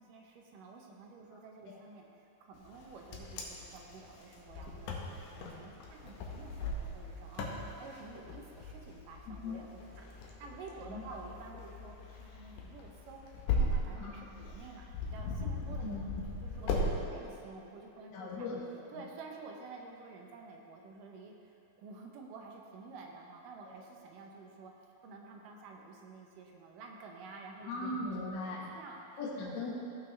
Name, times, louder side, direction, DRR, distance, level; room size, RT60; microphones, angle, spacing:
voice 1, 0.0-2.1 2.4-10.1 10.4-15.9 16.4-18.5 18.9-24.7 25.0-28.3 28.8-29.6, right 4 dB, 75° right, 1 dB, 2.3 m, -50 dB
Wind, 2.7-16.9, left 2 dB, 70° left, 2.2 m, -38 dB
voice 2, 9.3-9.6 10.9-11.0 14.0-14.2 15.8-16.0 16.6-16.9 18.0-18.8 27.6-28.7 29.2-29.7, left 2 dB, 45° left, -5 dB, 1.5 m, -39 dB
16.5 x 5.9 x 3.3 m, 2.7 s
omnidirectional pair, 4.2 m